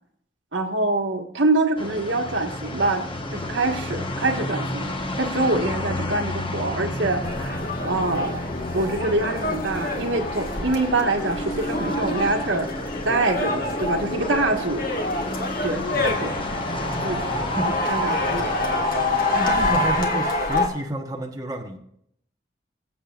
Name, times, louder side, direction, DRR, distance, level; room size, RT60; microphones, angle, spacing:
voice 1, 0.5-4.9 5.2-8.4 8.7-12.7 13.0-14.8 15.6-16.3 17.0-17.2 17.9-18.8, right 2 dB, 80° right, 3 dB, 1.6 m, -25 dB
sound 1, 1.8-20.0, left 1 dB, 30° left, 1.2 m, -32 dB
sound 2, 7.2-20.7, left 2 dB, 50° left, 1.8 m, -27 dB
voice 2, 19.3-21.8, right 1 dB, 20° right, 1 dB, 1.2 m, -30 dB
22.5 x 7.7 x 2.5 m, 0.69 s
head